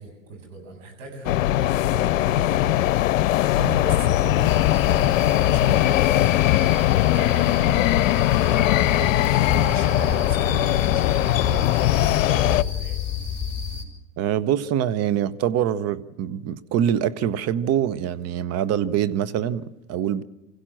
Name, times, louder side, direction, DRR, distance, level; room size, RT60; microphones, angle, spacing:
voice 1, 0.0-1.4 1.9-2.7 3.5-13.0, right 3 dB, 75° right, 7.8 m, -39 dB
sound 1, 1.2-12.6, left 14 dB, 80° left, 0.7 m, -20 dB
sound 2, 4.4-13.8, left 7 dB, 10° left, 4.7 m, -30 dB
voice 2, 14.2-20.2, right 10 dB, 40° right, 0.9 m, -24 dB
25.0 x 16.0 x 7.6 m
hypercardioid pair, 105°, 39 cm